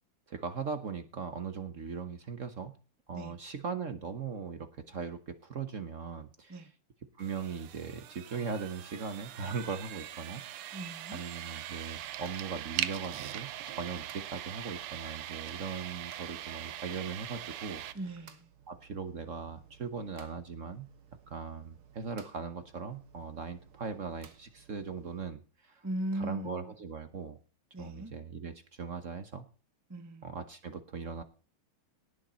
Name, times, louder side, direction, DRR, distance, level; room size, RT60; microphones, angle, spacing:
voice 1, 0.3-2.8 3.1-6.7 7.2-10.4 11.1-18.1 18.7-20.9 21.3-25.9 26.1-27.4 27.8-29.5 30.2-31.2, right 5 dB, 50° right, 1.0 m, -39 dB
sound 1, 7.2-17.9, right 12 dB, 85° right, 1.8 m, -41 dB
voice 2, 10.7-11.2 17.9-18.5 25.8-26.8 27.7-28.1 29.9-30.3, right 1 dB, 20° right, 0.5 m, -38 dB
sound 2, 11.8-25.3, right 8 dB, 70° right, 2.1 m, -59 dB
18.5 x 6.5 x 4.3 m
omnidirectional pair, 2.4 m